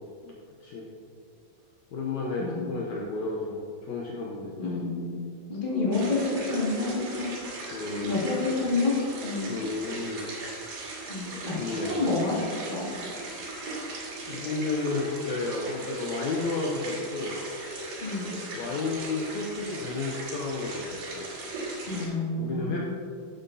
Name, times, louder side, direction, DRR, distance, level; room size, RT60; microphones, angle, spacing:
voice 1, 1.9-4.8 7.7-8.3 9.5-10.2 11.6-12.0 13.3-13.4 14.3-17.4 18.6-21.3 22.4-22.8, left 3 dB, 70° left, -3 dB, 1.9 m, -32 dB
voice 2, 4.6-5.2 5.5-7.3 8.0-8.9 9.2-9.5 11.1-12.9 18.0-18.3 21.9-22.8, left 3 dB, 20° left, -6 dB, 1.7 m, -29 dB
sound 1, 5.9-22.1, right 2 dB, 75° right, 3.8 m, -38 dB
12.0 x 7.6 x 2.8 m, 2.4 s
omnidirectional pair, 4.0 m